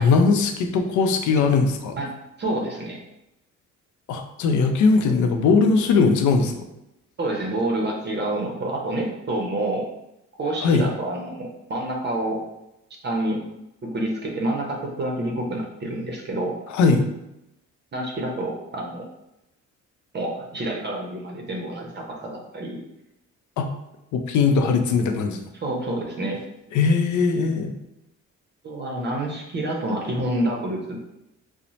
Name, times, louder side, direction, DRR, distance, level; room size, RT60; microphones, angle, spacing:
voice 1, 0.0-2.0 4.1-6.5 10.6-10.9 16.7-17.0 23.6-23.7 24.1-25.4 26.7-27.8, left 4 dB, 75° left, 6 dB, 0.5 m, -19 dB
voice 2, 2.4-3.0 7.2-9.9 10.4-12.4 13.0-13.4 13.8-16.6 17.9-19.0 20.1-22.8 25.5-26.4 28.6-31.0, right 1 dB, 35° right, -1 dB, 0.6 m, -28 dB
2.6 x 2.0 x 3.0 m, 0.88 s
cardioid pair, 90°, 30 cm